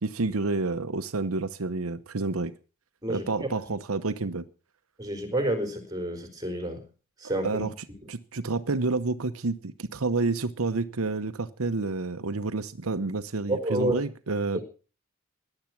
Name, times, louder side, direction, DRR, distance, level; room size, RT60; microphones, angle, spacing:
voice 1, 0.0-2.5 3.1-4.5 7.4-7.7 8.1-14.7, right 3 dB, 90° right, 1.0 m, -29 dB
voice 2, 3.0-3.5 5.0-6.8 7.2-7.6 13.5-14.0, right 1 dB, 20° right, 4.5 m, -29 dB
17.5 x 11.0 x 6.0 m
head